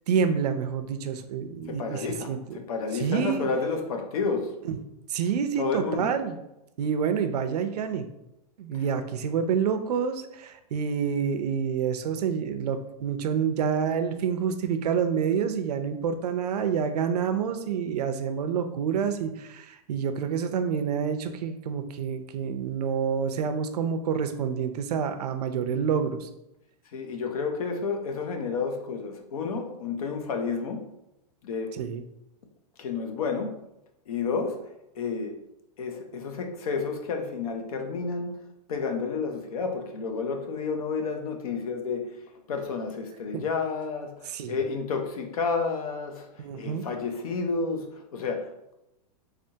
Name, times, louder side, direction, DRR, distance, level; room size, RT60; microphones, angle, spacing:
voice 1, 0.1-2.4 2.9-3.5 4.7-4.8 5.1-6.4 6.8-8.1 8.6-26.3 31.7-32.0 43.3-43.4 44.3-44.6 46.4-46.8, right 7 dB, 75° right, 8 dB, 0.5 m, -28 dB
voice 2, 1.7-4.5 5.6-6.1 26.9-30.9 31.4-31.7 32.8-33.6 34.1-34.6 35.0-35.4 35.8-38.4 38.7-42.2 42.5-48.7, left 4 dB, 65° left, 4 dB, 0.7 m, -31 dB
3.5 x 3.3 x 2.7 m, 0.88 s
supercardioid pair, 175°, 20 cm